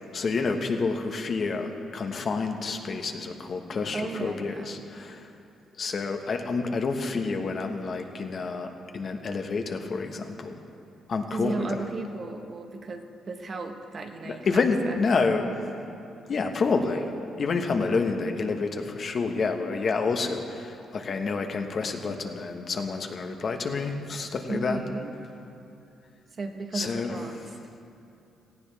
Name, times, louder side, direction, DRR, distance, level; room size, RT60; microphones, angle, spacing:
voice 1, 0.1-5.3 5.8-10.6 11.1-11.8 14.2-15.6 16.3-24.8 26.7-27.2, left 4 dB, 50° left, 4 dB, 1.2 m, -28 dB
voice 2, 3.9-4.8 11.3-15.0 24.5-25.1 26.4-27.4, right 3 dB, 45° right, 5 dB, 1.2 m, -35 dB
18.0 x 15.0 x 3.5 m, 2.7 s
cardioid pair, 90°, 0 cm